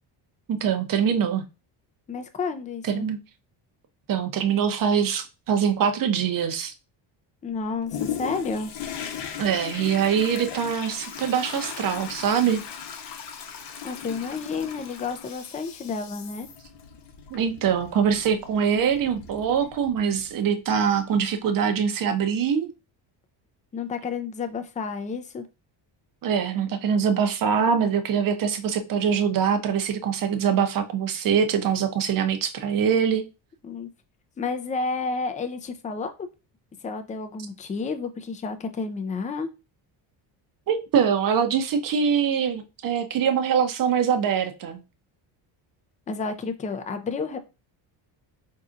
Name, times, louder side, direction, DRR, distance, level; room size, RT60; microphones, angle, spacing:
voice 1, 0.5-1.5 2.8-3.2 4.1-6.7 9.4-12.6 17.3-22.7 26.2-33.3 40.7-44.8, right 7 dB, 45° right, 0.7 m, -23 dB
voice 2, 2.1-3.0 7.4-8.7 13.8-16.5 23.7-25.5 33.6-33.9 34.4-36.3 36.8-39.5 46.1-47.4, left 4 dB, 15° left, 0.4 m, -31 dB
Toilet flush, 7.9-20.3 20.8-20.9, left 8 dB, 60° left, 0.8 m, -38 dB
4.1 x 2.7 x 2.4 m
cardioid pair, 100°, 48 cm